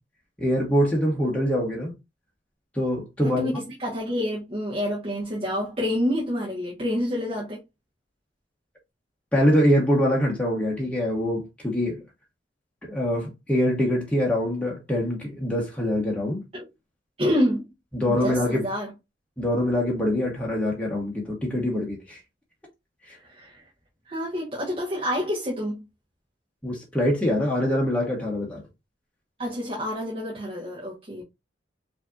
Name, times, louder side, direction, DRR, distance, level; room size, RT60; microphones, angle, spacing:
voice 1, 0.4-1.9 2.7-3.4 9.3-12.0 12.8-16.4 17.9-18.6 19.4-22.2 23.1-23.2 26.6-28.6, equal, 5° left, 0.9 m, -24 dB
voice 2, 3.2-7.6 16.5-16.7 17.2-17.7 18.0-18.9 23.2-23.6 24.1-25.8 29.4-31.2, equal, 35° right, 1.1 m, -28 dB
5.0 x 2.7 x 2.3 m
head